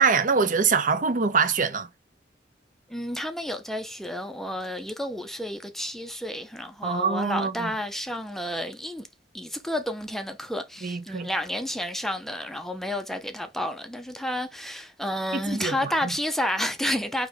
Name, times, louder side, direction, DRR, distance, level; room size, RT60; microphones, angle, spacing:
voice 1, 0.0-1.9 6.8-7.7 10.8-11.3 15.3-15.9, right 5 dB, 50° right, 0.6 m, -24 dB
voice 2, 2.9-9.1 9.3-17.3, equal, ahead, 0.5 m, -31 dB
5.0 x 2.9 x 3.4 m
head